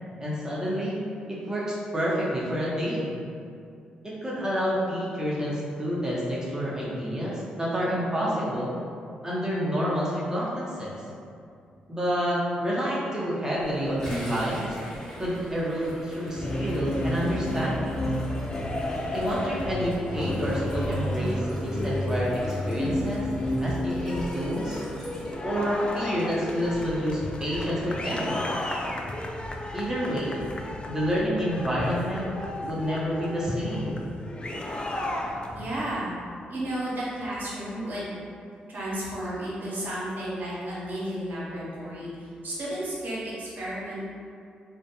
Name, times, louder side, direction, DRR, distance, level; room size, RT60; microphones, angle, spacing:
voice 1, 0.2-1.0 1.3-3.1 4.0-8.7 9.2-10.9 11.9-14.8 15.2-18.1 19.1-23.3 23.6-24.8 25.4-28.5 29.7-30.4 30.9-32.3 32.6-34.1, equal, 15° right, -7 dB, 0.9 m, -28 dB
sound 1, 13.6-25.9, equal, 10° left, 1.3 m, -41 dB
sound 2, 16.3-35.8, left 1 dB, 30° left, 0.3 m, -32 dB
voice 2, 35.5-36.1 36.5-38.1 38.7-44.1, right 1 dB, 55° right, -8 dB, 0.9 m, -33 dB
2.4 x 2.2 x 2.9 m, 2.4 s
hypercardioid pair, 40°, 4 cm